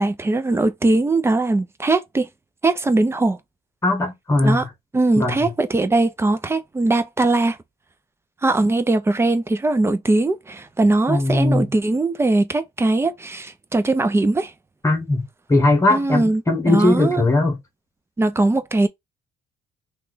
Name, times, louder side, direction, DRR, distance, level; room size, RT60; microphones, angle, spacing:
voice 1, 0.0-2.3 2.6-3.4 4.4-4.6 4.9-7.6 8.4-14.5 15.9-16.4 16.7-17.2 18.2-18.9, right 2 dB, 15° right, 0.5 m, -20 dB
voice 2, 3.8-4.7 5.2-5.5 11.1-11.7 14.8-15.2 15.5-17.6, left 2 dB, 15° left, 1.1 m, -19 dB
3.0 x 2.3 x 3.8 m
cardioid pair, 110°, 17 cm